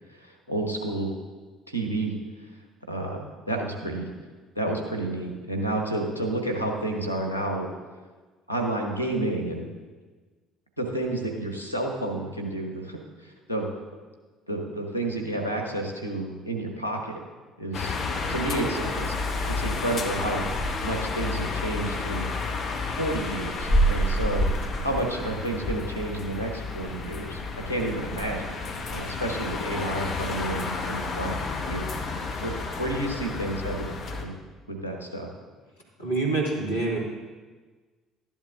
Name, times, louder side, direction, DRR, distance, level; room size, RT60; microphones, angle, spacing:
voice 1, 0.1-1.1 1.7-2.1 2.9-4.1 4.5-7.7 8.5-9.7 10.8-13.7 14.5-17.2 17.6-17.9 18.3-19.2 19.4-20.4 20.8-22.3 23.0-24.4 24.8-27.4 27.7-28.4 28.9-31.9 32.4-32.5 32.8-33.9 34.2-34.3 34.7-35.3, right 1 dB, 90° right, 2 dB, 1.2 m, -30 dB
sound 1, 17.7-34.3, left 2 dB, 45° left, 1.1 m, -29 dB
voice 2, 36.0-37.0, right 3 dB, 80° left, -3 dB, 1.9 m, -26 dB
12.5 x 10.5 x 2.5 m, 1.4 s
figure-of-eight pair, 55°, 0 cm